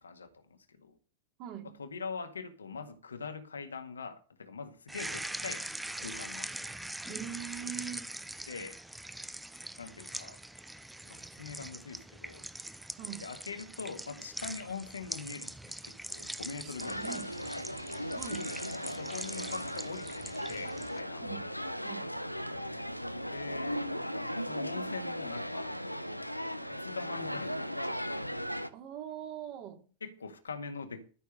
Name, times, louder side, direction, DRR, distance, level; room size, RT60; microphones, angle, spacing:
voice 1, 0.0-0.4 0.8-1.0 1.8-5.7 6.0-6.5 8.5-8.8 9.8-10.4 11.0-12.5 13.2-17.0 18.8-21.4 23.3-23.8 24.5-25.8 26.7-28.1 30.0-31.0, left 5 dB, 75° left, 1.8 m, -43 dB
voice 2, 1.4-1.8 7.1-8.1 13.0-13.2 16.6-17.3 18.2-18.5 21.2-21.5 21.8-22.1 28.7-29.9, right 9 dB, 40° right, 2.7 m, -42 dB
sound 1, 4.9-21.0, right 1 dB, 5° right, 0.7 m, -43 dB
sound 2, 16.8-28.7, equal, 90° left, 0.8 m, -37 dB
13.5 x 6.4 x 6.6 m
figure-of-eight pair, 90°, 0 cm